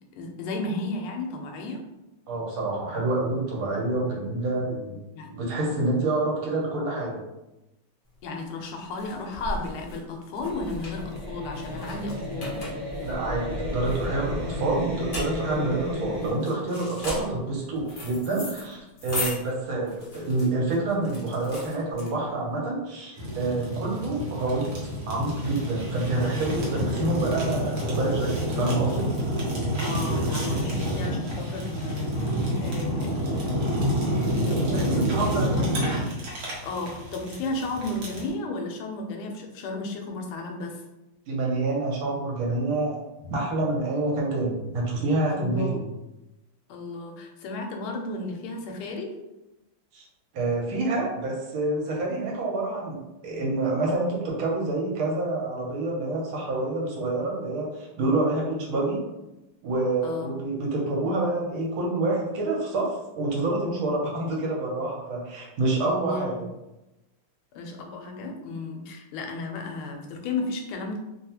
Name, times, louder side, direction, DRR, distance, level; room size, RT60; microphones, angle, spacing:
voice 1, 0.2-1.8 5.1-5.3 8.2-12.5 29.8-33.8 34.0-35.7 36.6-40.8 45.3-45.9 46.7-49.2 60.0-60.3 65.8-66.4 67.5-71.0, left 2 dB, 80° left, 2 dB, 1.5 m, -34 dB
voice 2, 2.3-5.0 5.3-7.2 13.0-24.7 25.1-29.1 34.6-35.8 41.3-43.0 43.2-45.8 49.9-50.0 50.3-59.0 59.6-66.5, right 2 dB, 75° right, -3 dB, 1.6 m, -27 dB
sound 1, 8.1-22.5, left 1 dB, 50° left, 0.6 m, -38 dB
sound 2, 10.5-16.3, equal, 35° right, 1.0 m, -33 dB
Fire, 23.2-38.3, equal, 60° right, 1.1 m, -28 dB
3.6 x 2.3 x 2.8 m, 0.96 s
omnidirectional pair, 2.4 m